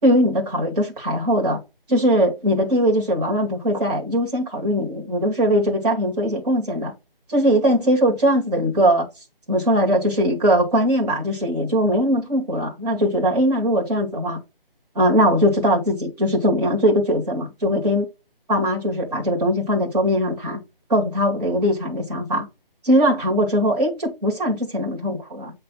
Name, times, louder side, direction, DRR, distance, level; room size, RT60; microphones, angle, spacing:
voice 1, 0.0-1.6 1.9-6.9 7.3-9.1 9.5-14.4 14.9-18.1 18.5-20.6 20.9-22.5 22.8-25.5, equal, 45° right, 2.3 m, -20 dB
8.5 x 3.4 x 3.9 m
figure-of-eight pair, 155°, 29 cm